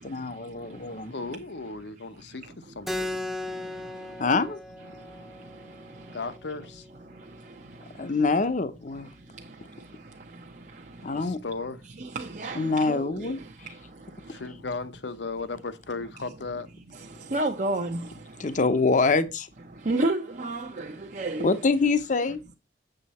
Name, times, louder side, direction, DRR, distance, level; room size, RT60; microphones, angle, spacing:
voice 1, 0.0-1.1 4.2-4.6 8.0-9.1 11.0-11.4 12.6-13.4 18.4-19.5 21.4-22.4, left 3 dB, 45° left, 0.8 m, -25 dB
voice 2, 1.1-3.2 6.1-6.9 11.1-11.8 14.3-16.7, left 3 dB, 80° left, 1.0 m, -36 dB
Keyboard (musical), 2.9-8.0, left 1 dB, ahead, 0.8 m, -38 dB
voice 3, 12.1-13.0 17.3-18.0 19.9-21.5, right 2 dB, 45° right, 0.8 m, -29 dB
7.9 x 7.3 x 4.2 m
head